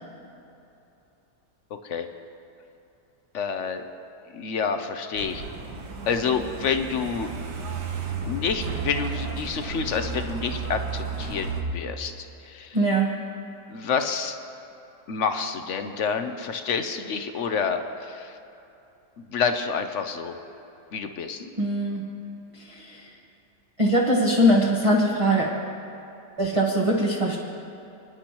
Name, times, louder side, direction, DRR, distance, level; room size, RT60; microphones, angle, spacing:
voice 1, 3.3-3.8 4.3-5.4 6.1-7.3 8.3-12.8 13.7-14.4 15.1-18.4 19.2-20.4 20.9-21.4, left 6 dB, 60° left, 7 dB, 0.8 m, -28 dB
Truck, 5.2-11.6, right 4 dB, 75° right, 1.7 m, -33 dB
voice 2, 12.7-13.1 21.4-22.0 22.5-23.1 23.8-25.5 26.4-27.4, equal, 20° right, -4 dB, 1.0 m, -22 dB
27.5 x 10.0 x 3.0 m, 2.9 s
omnidirectional pair, 1.8 m